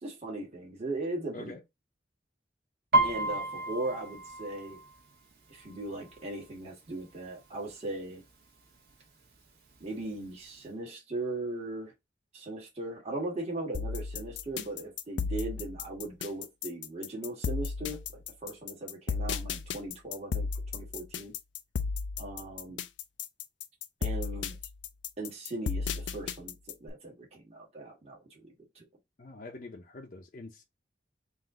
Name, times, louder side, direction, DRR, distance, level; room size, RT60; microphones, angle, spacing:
voice 1, 0.0-1.6 3.0-4.8 5.5-8.2 9.8-11.9 12.3-20.5 20.7-21.3 22.2-22.8 24.0-24.6 25.2-28.5 28.8-28.9, right 2 dB, 35° right, 1.6 m, -38 dB
Piano, 2.9-6.6 6.9-7.3 7.7-8.3 8.9-9.0 9.2-10.3 10.6-10.7, right 2 dB, 60° right, 1.4 m, -31 dB
sound 1, 13.7-26.9, left 5 dB, 85° left, 0.5 m, -34 dB
voice 2, 29.2-30.6, left 2 dB, 50° left, 0.7 m, -45 dB
4.0 x 2.6 x 3.7 m
head